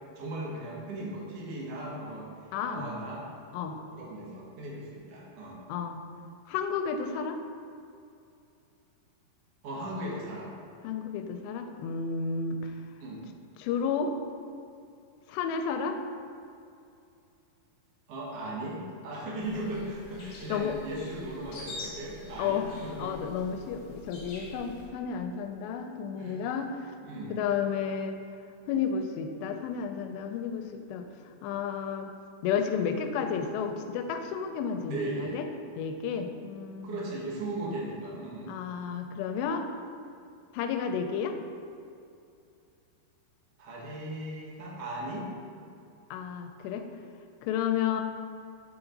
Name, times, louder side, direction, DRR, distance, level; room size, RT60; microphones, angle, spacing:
voice 1, 0.1-2.3 2.6-3.2 3.7-5.6 9.6-10.5 13.0-13.2 18.1-23.1 26.2-26.4 27.0-27.3 34.8-35.4 36.8-38.5 43.6-45.3, right 1 dB, 70° right, -5 dB, 1.5 m, -37 dB
voice 2, 2.5-2.9 3.5-3.8 5.7-6.0 6.5-7.4 10.8-12.7 13.6-14.1 15.3-16.0 20.5-20.8 22.4-22.7 23.0-26.9 27.3-28.2 28.7-32.1 32.4-35.4 35.8-37.0 38.5-39.7 40.5-41.4 46.1-46.9 47.4-48.0, left 6 dB, 85° left, 6 dB, 2.6 m, -32 dB
sound 1, 19.4-24.9, left 2 dB, 60° left, 1.8 m, -46 dB
7.0 x 6.4 x 3.9 m, 2.5 s
omnidirectional pair, 5.1 m